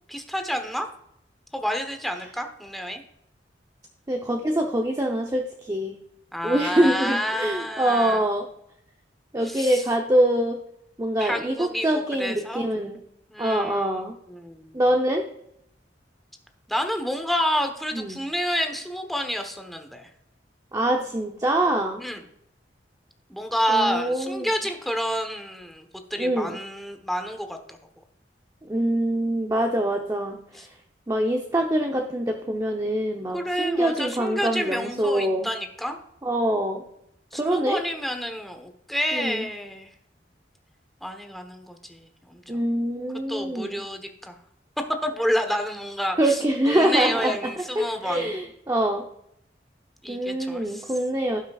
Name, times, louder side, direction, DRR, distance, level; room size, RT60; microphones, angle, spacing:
voice 1, 0.1-0.9 1.5-3.0 6.3-8.3 9.4-9.8 11.2-12.7 13.3-14.8 16.7-20.1 22.0-22.2 23.3-27.8 30.5-30.7 33.3-36.0 37.3-39.9 41.0-42.4 43.3-44.4 45.0-46.4 46.7-48.3 50.0-50.9, equal, ahead, 5 dB, 1.1 m, -29 dB
voice 2, 4.1-6.0 6.4-8.5 9.3-10.6 11.0-13.0 13.4-14.2 14.7-15.3 17.9-18.2 20.7-22.0 23.7-24.5 26.2-26.6 28.7-30.4 31.1-35.5 36.2-36.8 37.3-37.8 39.1-39.5 42.5-43.8 46.2-49.1 50.1-51.4, right 1 dB, 20° right, 2 dB, 0.8 m, -24 dB
16.5 x 6.1 x 2.4 m, 0.77 s
head